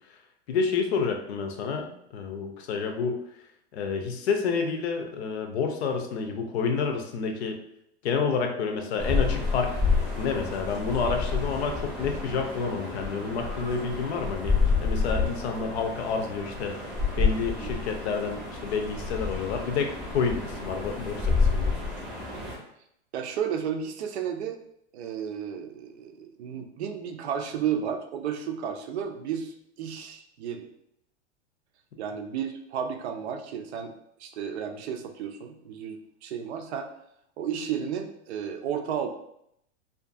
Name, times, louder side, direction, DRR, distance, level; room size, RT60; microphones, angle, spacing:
voice 1, 0.5-3.2 3.7-7.6 8.0-9.8 10.2-16.9 17.2-21.7, left 5 dB, 65° left, 4 dB, 0.6 m, -29 dB
sound 1, 9.0-22.6, left 4 dB, 5° right, 0.7 m, -29 dB
voice 2, 23.1-24.6 24.9-30.7 32.0-33.9 34.2-36.9 37.4-39.1, right 8 dB, 70° right, 6 dB, 0.5 m, -33 dB
2.5 x 2.4 x 2.5 m, 0.75 s
supercardioid pair, 150°, 34 cm